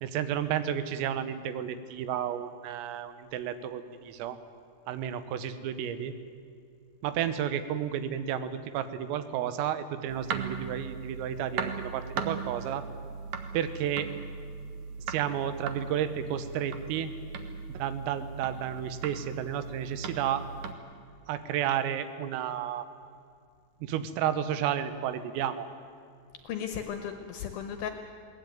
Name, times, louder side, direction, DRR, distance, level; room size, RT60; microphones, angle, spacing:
voice 1, 0.0-4.4 4.9-6.1 7.0-12.8 13.5-14.1 15.1-17.1 17.7-20.4 21.3-22.9 23.8-25.7, right 10 dB, 85° right, 11 dB, 3.8 m, -32 dB
sound 1, 10.1-20.7, right 6 dB, 70° right, 2.0 m, -38 dB
voice 2, 26.4-27.9, left 8 dB, 75° left, 6 dB, 2.2 m, -35 dB
21.0 x 18.5 x 9.3 m, 2.2 s
omnidirectional pair, 5.8 m